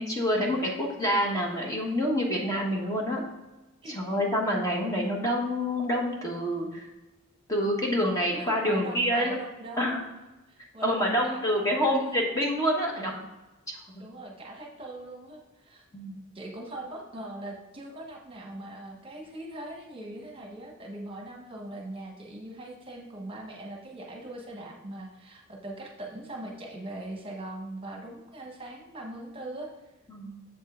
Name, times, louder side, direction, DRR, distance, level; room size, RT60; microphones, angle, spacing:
voice 1, 0.0-3.2 3.9-6.9 7.5-9.4 9.8-10.0 10.8-13.2 13.7-14.0 15.9-16.2 30.1-30.4, equal, 15° left, -1 dB, 1.1 m, -27 dB
voice 2, 8.3-10.0 10.5-12.1 14.0-15.8 16.3-29.7, right 1 dB, 25° right, 0 dB, 1.3 m, -41 dB
7.5 x 5.4 x 3.6 m, 1.1 s
head